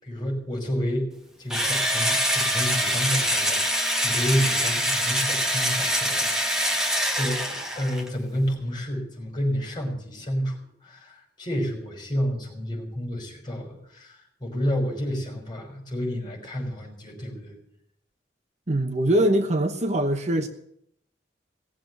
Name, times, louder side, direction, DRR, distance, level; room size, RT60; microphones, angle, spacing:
voice 1, 0.0-1.1 1.4-6.8 7.1-10.6 10.8-17.5, equal, 25° left, 0 dB, 5.6 m, -30 dB
Engine / Drill, 1.5-8.1, equal, 5° right, 1.8 m, -24 dB
voice 2, 18.7-20.5, right 1 dB, 40° right, 6 dB, 1.1 m, -22 dB
18.5 x 7.8 x 9.4 m, 0.72 s
head